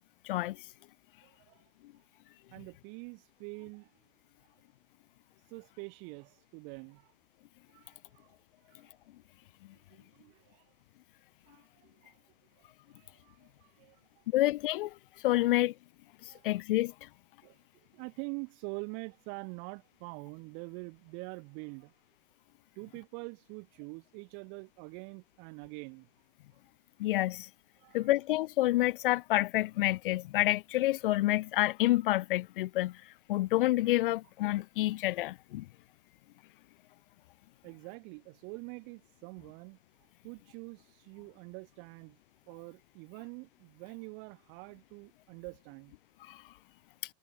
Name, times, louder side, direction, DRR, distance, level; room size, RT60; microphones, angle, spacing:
voice 1, 0.2-0.6 14.3-14.9 15.2-15.7 16.2-17.1 27.0-27.5 27.9-35.7 46.3-46.4, left 17 dB, 60° left, 0.7 m, -28 dB
voice 2, 1.2-1.6 2.5-3.9 4.4-4.5 5.4-7.1 7.7-8.9 9.9-10.7 11.4-12.3 12.6-14.2 16.3-16.5 17.4-17.6 17.9-21.9 22.7-26.3 27.8-28.1 37.6-42.2 42.5-45.9, right 39 dB, 35° right, 4.7 m, -46 dB
supercardioid pair, 180°, 31 cm